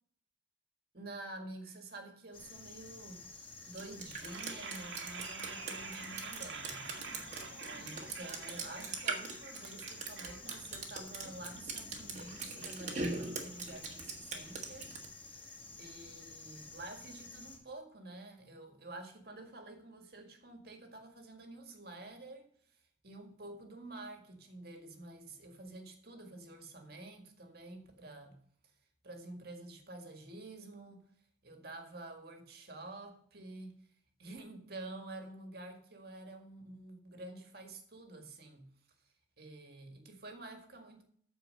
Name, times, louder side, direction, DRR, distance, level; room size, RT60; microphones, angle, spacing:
voice 1, 0.9-3.3 3.7-7.0 7.4-14.9 15.2-28.4 29.0-31.0 31.4-33.7 34.2-38.7 39.4-41.0, right 2 dB, 55° right, 4 dB, 1.9 m, -49 dB
sound 1, 2.3-17.6, left 3 dB, 30° left, 1.9 m, -51 dB
Drip, 3.8-15.1, right 4 dB, 35° right, 1.7 m, -42 dB
sound 2, 4.1-14.1, right 5 dB, 75° right, 1.5 m, -48 dB
13.5 x 4.7 x 6.5 m, 0.62 s
head